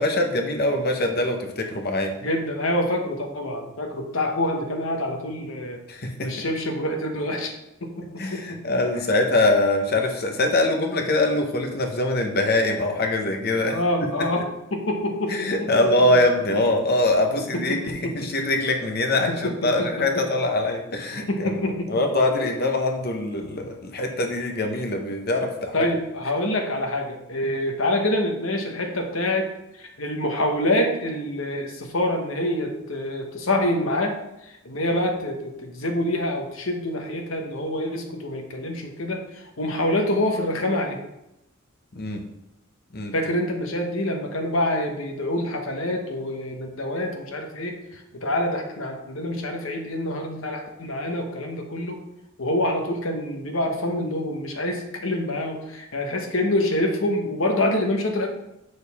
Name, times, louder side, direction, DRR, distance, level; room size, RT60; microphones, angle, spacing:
voice 1, 0.0-2.1 5.9-6.3 8.2-14.1 15.3-21.5 21.9-25.9 41.9-42.2 42.9-43.1, left 2 dB, 50° left, 4 dB, 1.0 m, -23 dB
voice 2, 2.2-5.8 6.2-7.5 7.8-8.6 13.7-14.5 14.7-15.7 17.3-18.5 19.3-20.2 21.1-21.9 25.7-29.5 30.0-34.2 34.4-41.0 43.1-52.0 52.4-58.3, left 1 dB, 70° left, 3 dB, 1.2 m, -26 dB
6.7 x 6.5 x 3.6 m, 0.86 s
head